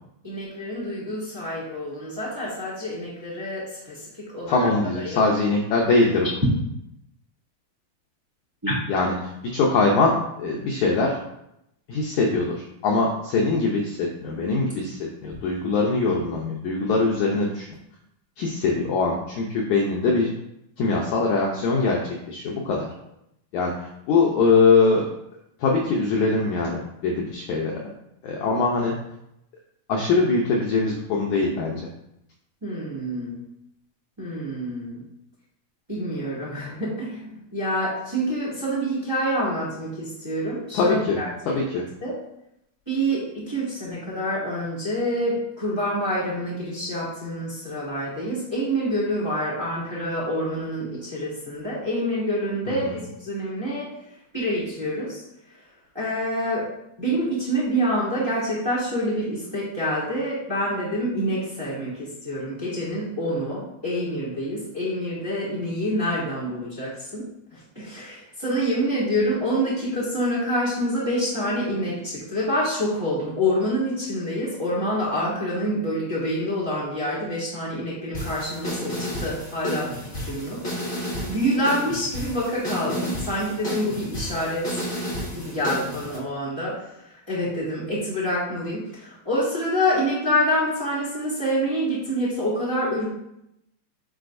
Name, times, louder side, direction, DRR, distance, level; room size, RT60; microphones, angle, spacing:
voice 1, 0.2-5.3 8.6-8.7 32.6-33.4 34.2-35.0 35.9-41.5 42.0-42.2 42.9-55.7 55.9-56.7 57.0-84.8 85.3-93.1, equal, 10° right, -8 dB, 1.7 m, -27 dB
voice 2, 4.5-6.3 8.9-11.2 11.9-17.7 18.4-20.3 20.8-22.0 22.3-22.9 23.5-25.1 25.6-27.8 28.2-28.9 29.9-31.9 40.7-41.2 41.5-41.8 52.8-52.9, left 3 dB, 85° left, -1 dB, 1.6 m, -22 dB
sound 1, 78.1-86.2, equal, 25° left, 1.8 m, -32 dB
11.5 x 4.1 x 2.6 m, 0.81 s
omnidirectional pair, 4.4 m